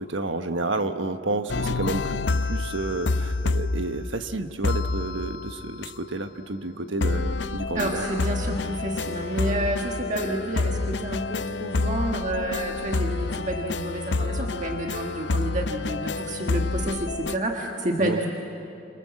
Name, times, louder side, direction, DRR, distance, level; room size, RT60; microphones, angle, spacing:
voice 1, 0.0-8.0 18.0-18.2, right 2 dB, 75° right, 8 dB, 1.3 m, -30 dB
sound 1, 1.5-4.3 4.6-5.9 7.0-17.4, left 3 dB, 60° left, 0.6 m, -28 dB
voice 2, 7.7-18.3, right 1 dB, 40° right, 1 dB, 1.7 m, -29 dB
29.0 x 26.5 x 7.6 m, 2.8 s
head